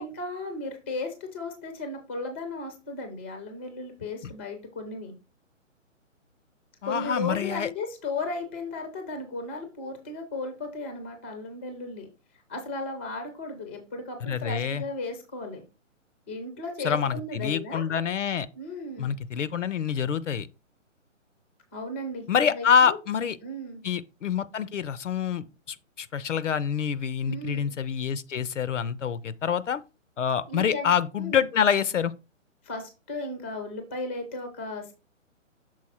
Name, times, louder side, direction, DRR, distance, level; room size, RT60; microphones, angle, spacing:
voice 1, 0.0-5.1 6.8-12.1 12.5-15.6 16.3-17.8 18.5-19.1 21.7-23.0 23.4-23.8 27.3-27.7 30.5-30.9 31.2-31.4 32.6-34.9, left 2 dB, 10° left, 0.4 m, -35 dB
voice 2, 6.8-7.7 14.2-14.8 16.8-18.5 19.0-20.5 22.3-23.4 23.8-29.8 30.2-32.1, left 7 dB, 70° left, 0.6 m, -26 dB
6.3 x 4.0 x 4.2 m
figure-of-eight pair, 140°, 39 cm